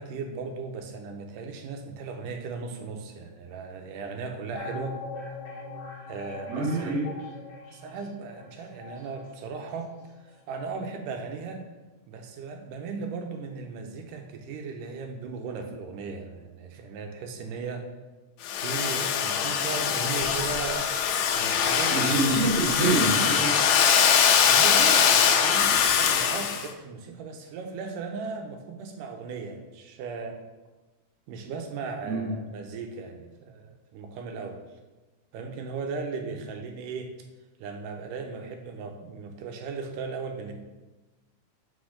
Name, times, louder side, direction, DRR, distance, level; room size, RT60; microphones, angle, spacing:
voice 1, 0.0-5.0 6.1-7.1 7.7-9.9 10.5-11.6 12.1-17.9 18.6-20.9 21.4-22.4 24.5-30.4 31.3-34.6 35.3-37.1 37.6-40.5, right 4 dB, 85° right, 4 dB, 2.4 m, -37 dB
sound 1, 4.5-10.1 10.4-10.5, left 3 dB, 55° left, 1.9 m, -42 dB
voice 2, 6.5-7.1 21.9-23.7 32.1-32.3, right 3 dB, 35° right, -4 dB, 1.6 m, -26 dB
Domestic sounds home sounds, 18.4-26.7, left 7 dB, 80° left, 2.0 m, -22 dB
6.2 x 5.4 x 4.9 m, 1.1 s
omnidirectional pair, 3.7 m